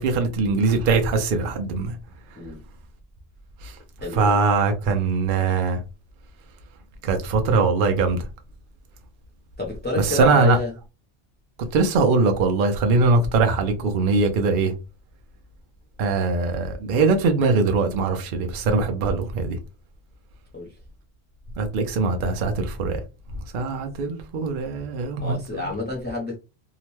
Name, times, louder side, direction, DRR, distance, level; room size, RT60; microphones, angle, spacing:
voice 1, 0.0-1.9 3.6-3.7 4.1-5.8 7.0-8.2 10.0-10.6 11.7-14.7 16.0-19.6 21.6-23.0 23.5-25.7, right 4 dB, 60° right, 0.7 m, -21 dB
voice 2, 4.0-4.3 9.6-10.7 12.9-13.0 20.5-20.7 25.2-26.4, left 3 dB, 15° left, 0.5 m, -29 dB
2.8 x 2.1 x 3.0 m
omnidirectional pair, 1.1 m